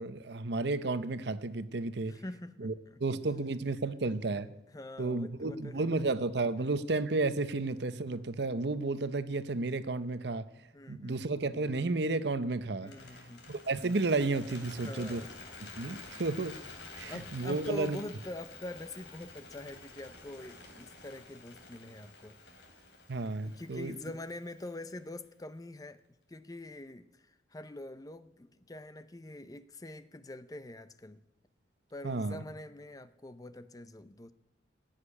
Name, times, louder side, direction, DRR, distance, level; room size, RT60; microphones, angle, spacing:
voice 1, 0.0-2.1 2.6-2.7 3.0-4.5 5.0-10.5 10.9-12.9 13.5-15.2 15.8-16.6 17.0-18.0 23.1-24.0 32.0-32.4, right 3 dB, 60° right, 14 dB, 0.7 m, -32 dB
voice 2, 2.1-3.0 4.7-5.9 10.7-11.4 12.8-13.5 14.8-15.4 17.1-22.4 23.4-26.0 26.3-31.2 31.9-34.3, left 1 dB, 20° left, 13 dB, 0.5 m, -44 dB
Bird, 12.8-25.0, left 3 dB, 65° left, 2.8 m, -50 dB
16.5 x 6.7 x 9.7 m, 0.92 s
head